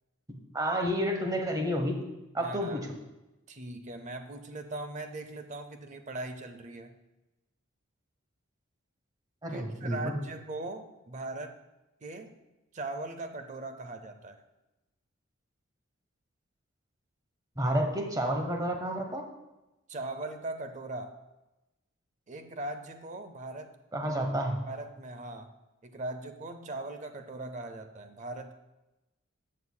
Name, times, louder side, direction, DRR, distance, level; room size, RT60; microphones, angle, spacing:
voice 1, 0.3-2.0 2.3-2.9 9.4-10.2 17.6-19.2 23.9-24.6, equal, 20° right, 3 dB, 1.0 m, -30 dB
voice 2, 2.4-2.9 3.5-7.0 9.5-11.6 12.0-12.3 12.7-14.4 19.9-21.2 22.3-23.7 24.7-25.5 25.8-28.5, right 2 dB, 35° right, 8 dB, 0.5 m, -40 dB
14.0 x 6.6 x 2.2 m, 1.0 s
head